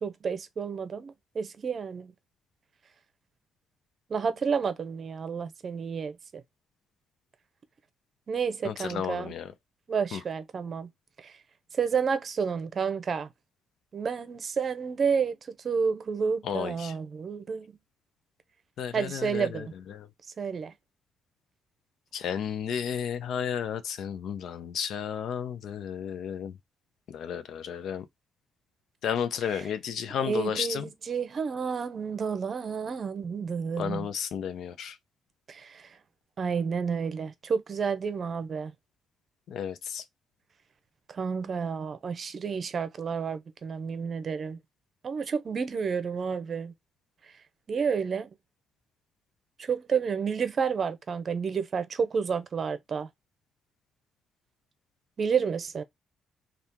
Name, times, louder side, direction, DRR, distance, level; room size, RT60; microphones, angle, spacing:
voice 1, 0.0-2.1 4.1-6.4 8.3-9.3 9.9-10.9 11.2-11.3 11.7-13.3 13.9-17.7 18.9-19.7 20.4-20.7 29.4-29.7 30.2-34.1 35.5-36.0 36.4-38.7 41.1-44.6 45.0-46.7 47.2-47.3 47.7-48.3 49.6-53.1 55.2-55.8, right 6 dB, 45° right, 0.6 m, -30 dB
voice 2, 8.6-9.5 10.1-10.2 16.4-16.9 18.8-19.6 20.0-20.1 22.1-26.5 27.1-28.0 29.0-30.8 33.8-34.9 39.5-40.0, left 8 dB, 70° left, 0.5 m, -32 dB
2.8 x 2.4 x 3.5 m
cardioid pair, 90°, 0 cm